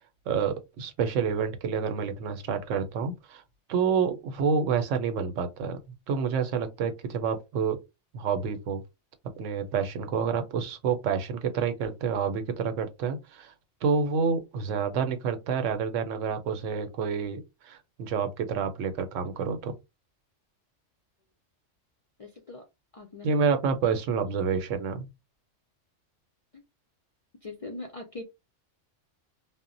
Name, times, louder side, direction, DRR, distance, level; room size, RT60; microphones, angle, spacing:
voice 1, 0.3-3.4 3.7-5.8 6.1-7.8 8.1-8.8 9.4-13.5 13.8-19.8 23.2-25.1, right 6 dB, 90° right, 1.0 m, -28 dB
voice 2, 22.2-22.6 22.9-23.4 26.5-26.6 27.4-28.2, left 2 dB, 55° left, 0.3 m, -41 dB
2.1 x 2.1 x 3.7 m
omnidirectional pair, 1.3 m